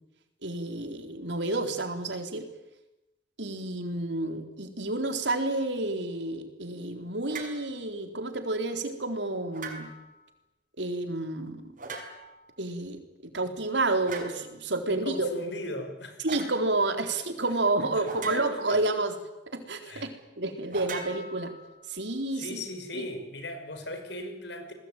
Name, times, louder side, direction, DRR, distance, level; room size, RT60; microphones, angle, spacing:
voice 1, 0.4-2.5 3.4-9.9 10.8-11.7 12.6-15.3 16.2-19.1 19.5-21.5 21.9-22.6 22.9-23.1, right 2 dB, 80° right, 6 dB, 3.9 m, -30 dB
sound 1, 7.3-7.6 9.5-10.1 11.8-12.4 14.1-14.4 16.3-16.6 18.0-18.8 20.7-21.8, right 4 dB, 50° right, 5.7 m, -40 dB
voice 2, 14.9-16.2 17.1-17.2 18.0-18.8 19.9-20.1 22.4-24.7, left 1 dB, 75° left, 7 dB, 5.5 m, -38 dB
30.0 x 20.5 x 9.1 m, 0.95 s
head